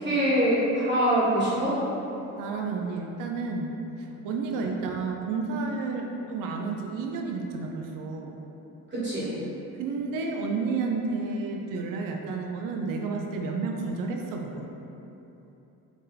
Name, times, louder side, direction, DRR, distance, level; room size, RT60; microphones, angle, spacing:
voice 1, 0.0-1.8 8.9-9.3, right 1 dB, 35° right, -9 dB, 1.5 m, -24 dB
voice 2, 2.4-3.8 4.2-8.4 9.8-14.7, right 4 dB, 80° right, 2 dB, 0.5 m, -31 dB
3.5 x 2.7 x 3.9 m, 3.0 s
cardioid pair, 110°, 32 cm